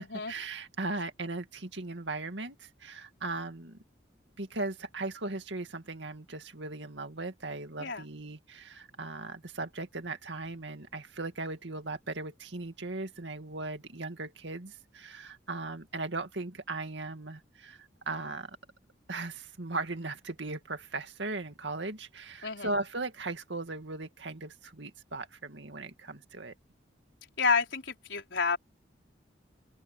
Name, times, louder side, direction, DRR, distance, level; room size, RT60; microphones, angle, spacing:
voice 1, 0.0-3.8 4.4-18.6 19.1-26.5, right 2 dB, 75° right, 2.2 m, -38 dB
voice 2, 27.4-28.6, left 5 dB, 80° left, 4.3 m, -29 dB
open air
head